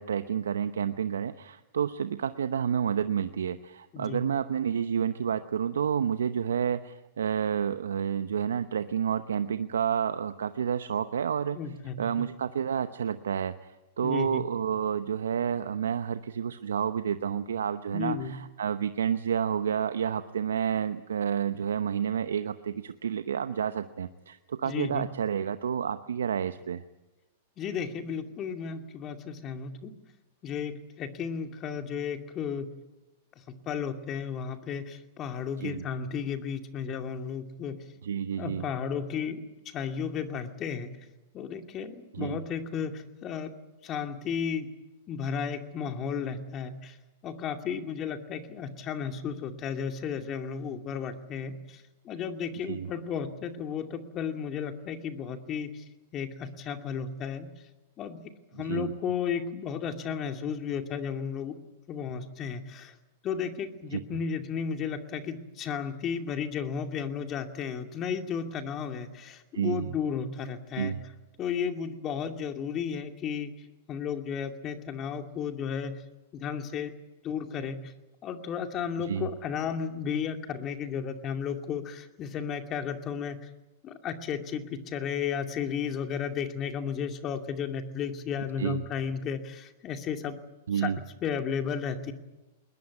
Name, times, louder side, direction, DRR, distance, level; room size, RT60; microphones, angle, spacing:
voice 1, 0.0-11.6 12.0-26.8 35.6-35.8 38.0-38.6 42.1-42.4 52.7-52.9 58.6-58.9 63.9-64.0 69.5-69.9 70.8-71.0 79.1-79.3 88.6-88.8 90.7-91.0, right 8 dB, 85° right, 11 dB, 0.9 m, -30 dB
voice 2, 11.6-12.2 14.0-14.5 17.9-18.3 24.6-25.1 27.6-29.9 30.4-32.7 33.5-37.8 38.4-39.4 39.7-40.9 41.3-43.5 43.8-44.7 45.1-47.0 47.2-55.8 56.1-57.5 58.0-61.6 61.9-62.9 63.2-71.0 71.4-73.5 73.9-76.0 76.3-76.9 77.2-77.9 78.2-83.5 83.8-90.4 90.7-90.9 91.2-92.1, left 7 dB, 35° left, 6 dB, 2.5 m, -33 dB
21.0 x 20.0 x 9.4 m, 1.0 s
hypercardioid pair, 115°, 0 cm